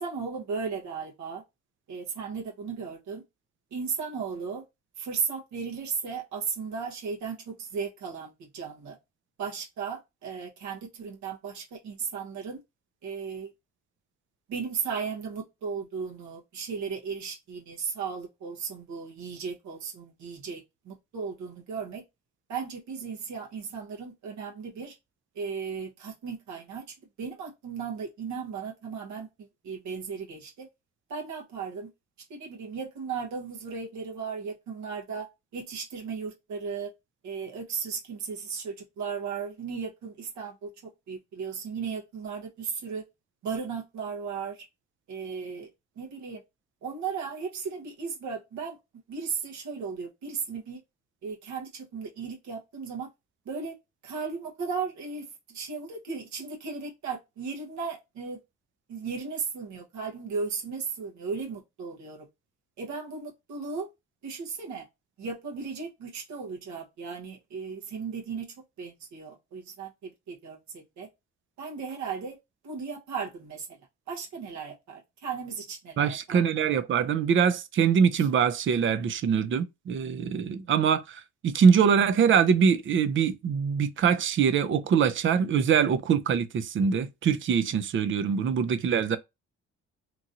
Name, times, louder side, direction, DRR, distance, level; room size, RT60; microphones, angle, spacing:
voice 1, 0.0-1.4 1.9-3.2 3.7-4.6 5.0-9.0 9.4-12.6 13.0-13.5 14.5-22.0 22.5-25.0 25.3-26.8 27.2-30.7 31.1-31.9 32.3-35.3 35.5-36.9 37.2-43.0 43.4-44.6 45.1-45.7 46.0-46.4 46.8-48.8 49.1-50.8 51.2-53.1 53.4-53.8 54.0-58.4 58.9-62.3 62.8-63.9 64.2-64.9 65.2-68.5 68.8-71.1 71.6-72.4 72.6-73.8 74.1-76.4 78.2-78.3, right 5 dB, 70° right, 1.0 m, -36 dB
voice 2, 76.0-89.2, right 7 dB, 40° right, 0.4 m, -23 dB
3.0 x 2.7 x 2.5 m
cardioid pair, 90°, 30 cm